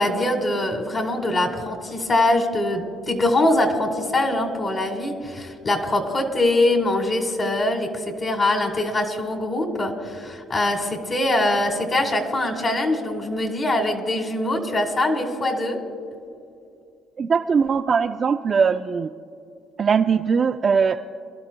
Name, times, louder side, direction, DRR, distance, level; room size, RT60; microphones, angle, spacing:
voice 1, 0.0-15.8, left 1 dB, 35° left, 3 dB, 1.4 m, -23 dB
voice 2, 17.2-19.1 19.8-21.0, right 6 dB, 40° right, 6 dB, 0.3 m, -20 dB
25.0 x 12.0 x 2.2 m, 2.5 s
cardioid pair, 110°, 0 cm